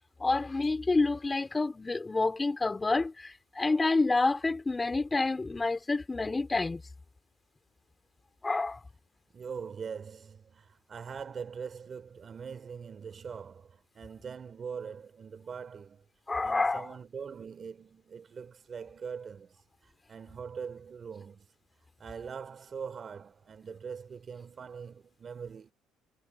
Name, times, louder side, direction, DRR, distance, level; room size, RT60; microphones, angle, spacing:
voice 1, 0.2-6.8 8.4-8.8 16.3-16.9, left 3 dB, 15° left, 3.2 m, -28 dB
voice 2, 9.3-16.0 16.4-19.6 19.8-21.5 22.0-25.7, right 6 dB, 35° right, 4.4 m, -42 dB
cardioid pair, 120°, 0 cm